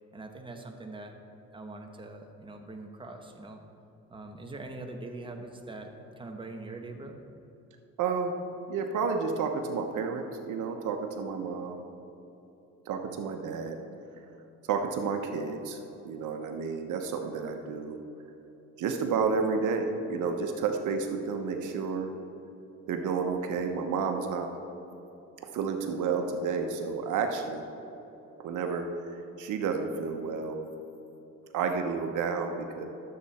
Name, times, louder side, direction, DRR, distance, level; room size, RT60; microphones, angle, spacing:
voice 1, 0.1-1.2 1.5-3.6 4.1-7.2, right 2 dB, 15° right, 3 dB, 1.1 m, -42 dB
voice 2, 8.0-8.3 8.7-11.8 12.9-13.8 14.7-15.8 16.0-18.0 18.8-22.1 22.9-24.5 25.5-27.6 28.4-28.9 29.1-30.6 31.5-32.9, right 5 dB, 80° right, 5 dB, 1.0 m, -31 dB
12.5 x 7.6 x 4.2 m, 3.0 s
cardioid pair, 90°, 30 cm